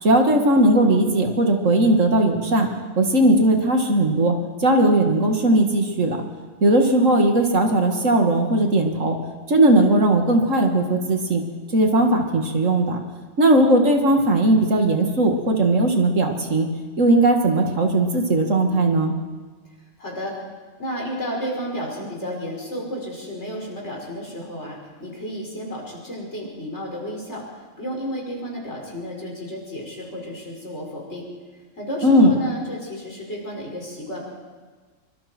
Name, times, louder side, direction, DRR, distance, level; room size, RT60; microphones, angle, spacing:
voice 1, 0.0-2.7 3.0-4.3 4.6-6.2 6.6-9.2 9.5-11.4 11.7-13.0 13.4-16.7 17.0-19.1 32.0-32.3, right 1 dB, 70° right, 3 dB, 2.5 m, -18 dB
voice 2, 20.0-20.4 20.8-31.3 31.8-34.3, equal, 55° left, -2 dB, 5.9 m, -32 dB
25.0 x 24.0 x 4.5 m, 1.4 s
omnidirectional pair, 1.4 m